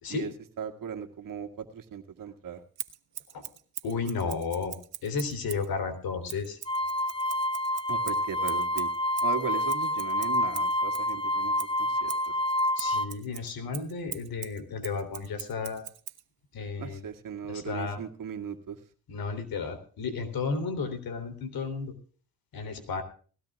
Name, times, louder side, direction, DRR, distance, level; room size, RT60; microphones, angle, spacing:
voice 1, 0.1-2.6 7.9-8.9 9.2-12.4 16.8-18.8, right 7 dB, 65° right, 7 dB, 2.1 m, -38 dB
Scissors, 2.8-5.7 6.3-11.1 11.6-16.2, right 13 dB, 85° right, 1.3 m, -42 dB
voice 2, 3.8-4.7 5.0-6.6 12.8-15.9 16.5-17.0 17.5-18.0 19.1-21.9 22.5-23.0, left 4 dB, 75° left, 8 dB, 3.4 m, -33 dB
sound 1, 6.7-13.1, left 1 dB, 15° left, 0.9 m, -28 dB
19.5 x 16.5 x 2.4 m, 0.41 s
cardioid pair, 110°, 36 cm